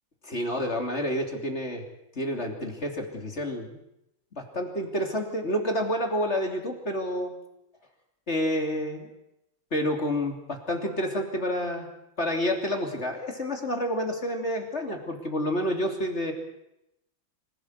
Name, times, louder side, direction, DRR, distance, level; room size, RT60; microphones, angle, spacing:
voice 1, 0.3-1.8 2.1-3.8 4.4-7.3 8.3-9.0 9.7-11.9 12.2-16.3, equal, 35° left, 3 dB, 3.2 m, -29 dB
25.5 x 17.0 x 8.1 m, 0.84 s
omnidirectional pair, 2.1 m